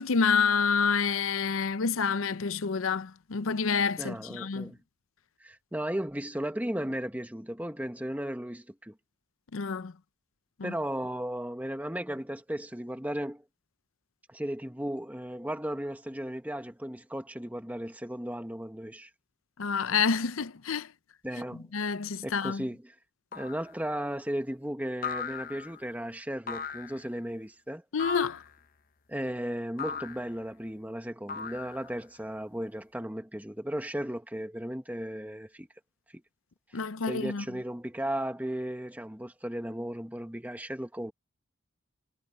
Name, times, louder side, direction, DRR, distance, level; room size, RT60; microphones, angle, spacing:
voice 1, 0.0-4.7 9.5-9.9 10.6-10.7 19.6-20.9 21.7-22.6 27.9-28.4 36.7-37.4, left 5 dB, 80° left, 0.6 m, -28 dB
voice 2, 4.0-4.8 5.4-8.9 10.6-13.4 14.3-19.1 21.2-21.6 22.2-22.9 23.3-27.8 29.1-35.7 36.1-36.2 36.7-41.1, right 1 dB, 10° right, 1.5 m, -35 dB
sound 1, 23.3-23.7 25.0-25.8 26.5-27.0 28.0-28.5 29.8-30.3 31.3-32.0, left 6 dB, 45° left, 0.8 m, -37 dB
head